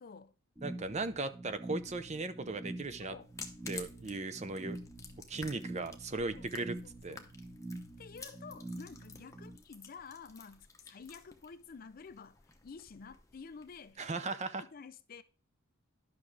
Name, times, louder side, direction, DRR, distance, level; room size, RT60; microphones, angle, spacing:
voice 1, 0.0-0.3 3.0-3.3 6.3-6.7 7.1-7.3 8.0-14.3 14.7-15.2, left 5 dB, 40° left, 0.4 m, -51 dB
sound 1, 0.6-9.6, right 2 dB, 10° right, 1.2 m, -46 dB
voice 2, 0.6-3.1 3.7-4.8 5.3-6.8 7.0-7.2 14.0-14.7, right 3 dB, 30° right, 0.6 m, -37 dB
sound 2, 3.2-13.9, left 4 dB, 15° left, 0.9 m, -52 dB
10.5 x 6.0 x 3.2 m
head